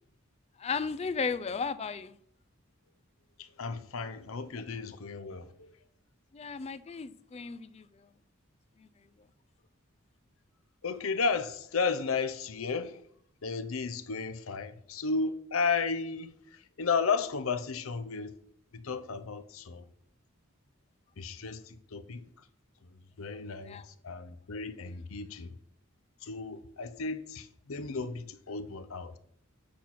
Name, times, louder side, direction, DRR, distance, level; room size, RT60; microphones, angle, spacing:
voice 1, 0.6-2.2 6.3-8.1 8.8-8.9 23.7-23.9, left 5 dB, 30° left, 0.3 m, -35 dB
voice 2, 3.4-5.7 10.8-13.0 13.4-18.4 18.7-19.9 21.2-22.2 22.9-25.5 26.2-29.2, left 4 dB, 80° left, 0.7 m, -34 dB
8.4 x 4.3 x 5.8 m
head